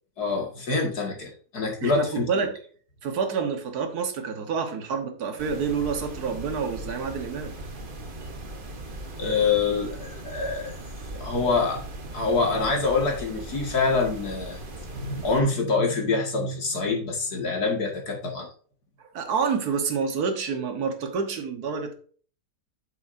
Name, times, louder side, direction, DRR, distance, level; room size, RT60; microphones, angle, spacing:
voice 1, 0.2-2.3 9.2-10.7 11.2-11.8 12.1-14.6 14.9-18.5, left 4 dB, 60° left, 2.5 m, -25 dB
voice 2, 1.8-2.6 3.0-7.5 19.1-21.9, right 5 dB, 60° right, 1.8 m, -28 dB
sound 1, 5.4-15.4, right 1 dB, 35° right, 1.1 m, -39 dB
8.5 x 7.1 x 2.7 m
omnidirectional pair, 1.9 m